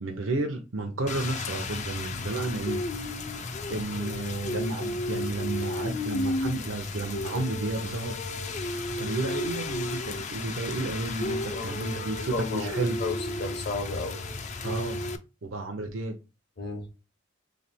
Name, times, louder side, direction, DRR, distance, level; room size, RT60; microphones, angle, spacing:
voice 1, 0.0-2.8 3.7-8.2 8.9-13.0 13.9-14.0 14.6-15.0 15.4-16.2, right 2 dB, 80° right, 0.7 m, -32 dB
Rain, 1.1-15.2, left 2 dB, 35° left, 0.4 m, -33 dB
voice 2, 11.5-12.7 13.0-14.2 16.6-16.9, left 3 dB, 55° left, 1.1 m, -34 dB
3.3 x 3.2 x 4.3 m
head